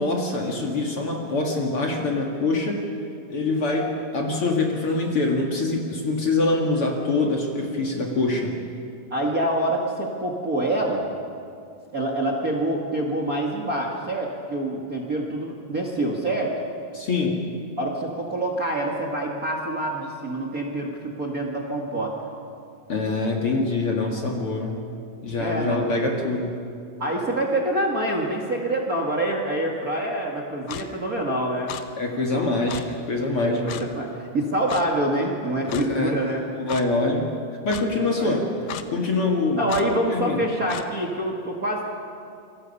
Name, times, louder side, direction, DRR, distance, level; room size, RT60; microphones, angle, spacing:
voice 1, 0.0-2.8 3.3-8.6 16.9-17.4 22.9-24.8 25.2-26.6 32.0-33.8 35.7-36.2 36.4-37.3 37.6-38.4 38.9-39.6 40.1-40.4, left 3 dB, 45° left, 0 dB, 2.6 m, -24 dB
voice 2, 9.1-11.0 11.9-16.5 17.8-22.2 25.4-25.9 27.0-31.8 32.3-32.7 33.4-36.5 38.0-38.4 39.6-41.9, right 1 dB, 30° right, -2 dB, 2.0 m, -26 dB
Clock, 30.7-30.9 31.7-31.8 32.7-32.8 33.7-33.9 34.7-34.8 35.7-35.9 36.7-36.8 37.7-37.8 38.7-38.9 39.7-39.9 40.7-40.9, left 10 dB, 80° left, 1.4 m, -34 dB
28.5 x 23.5 x 5.5 m, 2.5 s
omnidirectional pair, 3.9 m